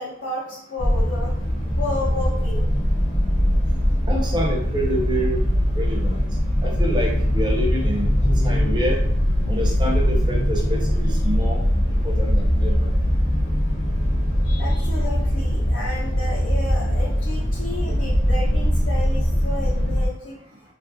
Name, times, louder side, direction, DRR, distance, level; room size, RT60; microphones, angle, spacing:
voice 1, 0.0-1.3 1.8-2.7 7.8-8.8 11.4-11.5 14.4-20.4, left 2 dB, 65° left, -7 dB, 0.7 m, -32 dB
sound 1, 0.8-20.1, equal, 30° left, 0.7 m, -21 dB
voice 2, 4.1-5.4 5.7-6.2 6.6-8.1 8.4-9.0 9.5-11.6 12.0-12.9, equal, 25° right, -1 dB, 0.6 m, -27 dB
3.0 x 2.5 x 2.5 m, 0.70 s
head